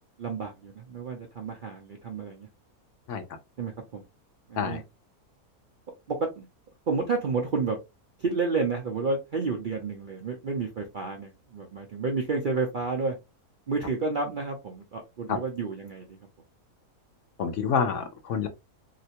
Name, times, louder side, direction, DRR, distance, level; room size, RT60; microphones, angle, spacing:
voice 1, 0.2-2.5 3.6-4.0 4.5-4.8 6.1-6.4 6.9-7.8 8.2-13.2 13.7-16.2, right 4 dB, 55° right, 0.5 m, -30 dB
voice 2, 17.4-18.5, left 6 dB, 65° left, 0.8 m, -27 dB
3.2 x 2.9 x 2.8 m
omnidirectional pair, 1.6 m